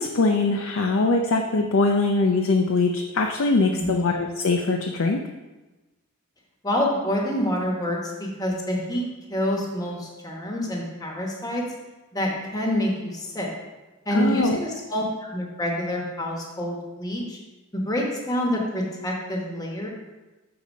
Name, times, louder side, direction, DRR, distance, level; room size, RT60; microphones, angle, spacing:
voice 1, 0.0-5.2 14.1-14.6, left 3 dB, 65° left, 3 dB, 0.5 m, -22 dB
voice 2, 6.6-11.7 12.1-13.5 14.1-15.0 15.3-17.4 17.7-19.9, equal, 15° left, -1 dB, 1.0 m, -27 dB
6.7 x 4.0 x 6.3 m, 1.1 s
head